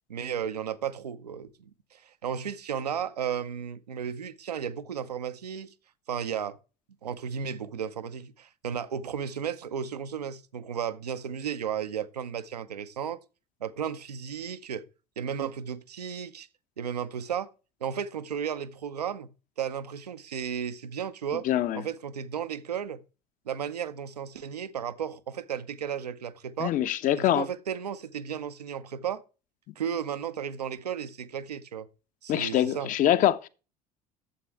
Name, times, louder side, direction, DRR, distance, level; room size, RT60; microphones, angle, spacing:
voice 1, 0.1-5.7 6.1-6.6 7.0-13.2 13.6-14.8 15.2-16.5 16.8-17.5 17.8-19.3 19.6-21.5 21.7-23.0 23.5-26.7 27.2-29.2 29.8-31.9 32.2-32.9, right 8 dB, 75° right, 0.6 m, -34 dB
voice 2, 21.4-21.8 26.6-27.5 32.3-33.5, left 12 dB, 40° left, 0.8 m, -24 dB
11.5 x 7.6 x 3.4 m
figure-of-eight pair, 65°, 20 cm